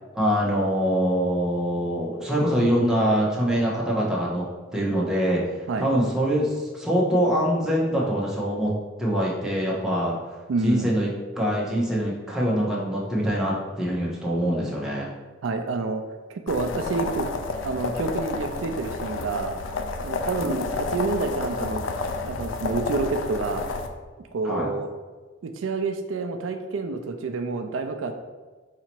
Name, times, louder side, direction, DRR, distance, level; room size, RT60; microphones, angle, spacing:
voice 1, 0.2-4.4 4.7-5.4 5.8-8.7 9.0-10.2 10.6-11.1 11.3-15.1 20.4-20.6 24.4-24.7, equal, 5° right, -6 dB, 1.0 m, -24 dB
voice 2, 10.5-11.0 15.4-16.0 16.3-17.3 17.6-19.5 20.0-21.8 22.2-23.7 24.3-24.9 25.4-28.1, right 4 dB, 80° right, 7 dB, 0.4 m, -28 dB
sound 1, 16.5-23.9, left 4 dB, 75° left, 0.4 m, -30 dB
4.1 x 2.8 x 4.5 m, 1.4 s
head